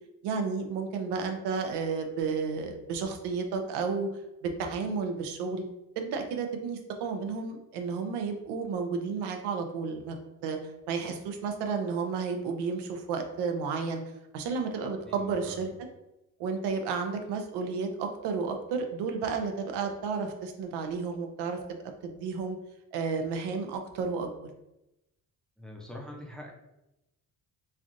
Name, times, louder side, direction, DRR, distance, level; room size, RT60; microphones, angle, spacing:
voice 1, 0.2-4.1 4.4-5.6 6.0-10.1 10.4-10.6 10.9-14.0 14.3-15.7 16.4-21.6 22.0-22.6 22.9-24.3, right 5 dB, 85° right, 5 dB, 0.6 m, -32 dB
voice 2, 15.0-15.8 25.6-26.5, left 1 dB, ahead, -1 dB, 0.6 m, -44 dB
3.2 x 2.5 x 2.5 m, 0.92 s
cardioid pair, 90°, 40 cm